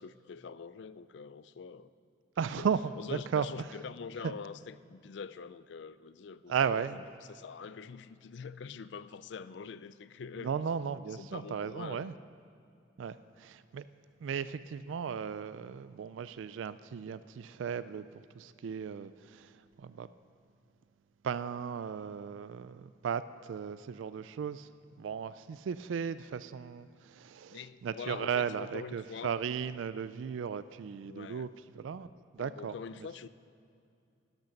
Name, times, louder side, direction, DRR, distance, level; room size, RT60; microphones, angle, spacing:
voice 1, 0.0-1.9 2.6-2.7 3.0-7.0 7.3-10.5 11.1-12.1 27.5-29.3 31.1-31.5 32.4-33.3, left 5 dB, 65° left, 15 dB, 0.4 m, -45 dB
voice 2, 2.4-3.6 4.2-4.3 6.5-7.0 10.4-12.1 13.0-13.8 14.2-20.1 21.2-24.7 25.0-31.5 31.8-32.8, right 7 dB, 80° right, 14 dB, 0.3 m, -36 dB
12.0 x 12.0 x 5.2 m, 2.5 s
head